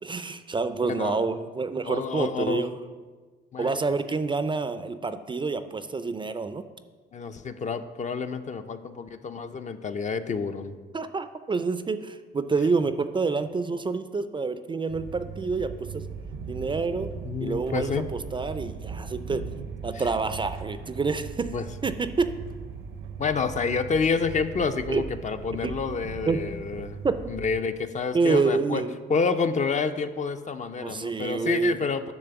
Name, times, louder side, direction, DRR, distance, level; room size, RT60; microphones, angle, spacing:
voice 1, 0.0-2.7 3.6-6.6 10.9-16.0 16.5-17.1 17.4-19.4 19.8-21.5 21.8-22.3 24.9-25.0 25.6-25.7 26.3-26.4 27.0-27.2 28.1-29.0 30.8-31.8, right 4 dB, 25° right, 11 dB, 0.4 m, -27 dB
voice 2, 1.9-2.7 3.5-3.9 7.1-10.8 17.2-18.1 21.5-21.7 23.2-27.0 27.3-28.8 29.1-32.1, left 5 dB, 35° left, 9 dB, 0.5 m, -28 dB
sound 1, 14.9-27.6, right 6 dB, 80° right, 0.8 m, -39 dB
10.0 x 3.4 x 7.0 m, 1.4 s
cardioid pair, 90°, 20 cm